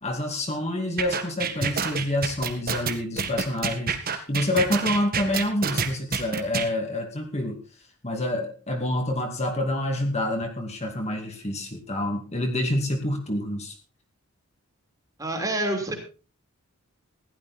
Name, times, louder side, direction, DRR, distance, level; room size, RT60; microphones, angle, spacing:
voice 1, 0.0-7.6 8.0-13.7, left 1 dB, 30° left, 3 dB, 2.4 m, -27 dB
sound 1, 1.0-6.7, right 5 dB, 40° right, 1.7 m, -27 dB
voice 2, 15.2-15.9, right 1 dB, 15° right, 4 dB, 3.0 m, -27 dB
16.0 x 12.0 x 4.2 m, 0.35 s
head